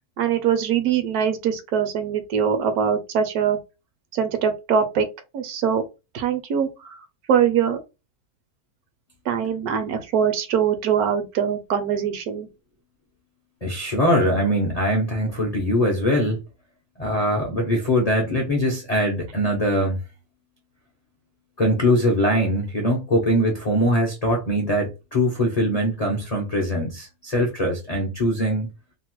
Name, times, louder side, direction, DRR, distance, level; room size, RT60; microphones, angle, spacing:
voice 1, 0.2-3.6 4.1-5.1 5.3-5.8 6.1-7.0 7.3-7.8 9.3-12.5, right 8 dB, 75° right, 1.1 m, -22 dB
voice 2, 13.6-16.4 17.0-20.0 21.6-28.7, equal, 55° left, 0.4 m, -22 dB
2.9 x 2.1 x 2.9 m
omnidirectional pair, 1.7 m